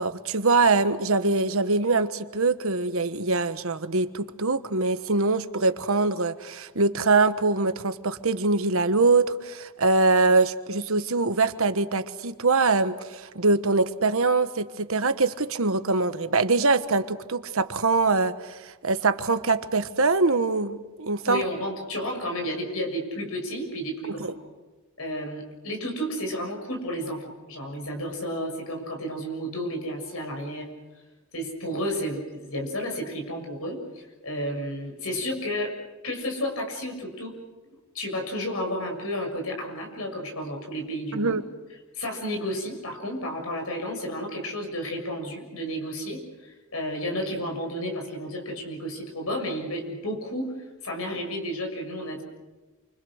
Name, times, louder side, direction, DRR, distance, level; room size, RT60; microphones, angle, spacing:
voice 1, 0.0-21.4 24.2-24.3 41.1-41.4, right 3 dB, 65° right, 10 dB, 1.3 m, -23 dB
voice 2, 21.2-24.3 25.0-30.7 31.3-35.7 36.0-37.3 37.9-41.4 41.9-50.5 50.8-52.2, equal, 70° left, 2 dB, 6.9 m, -32 dB
29.0 x 25.0 x 6.5 m, 1.2 s
head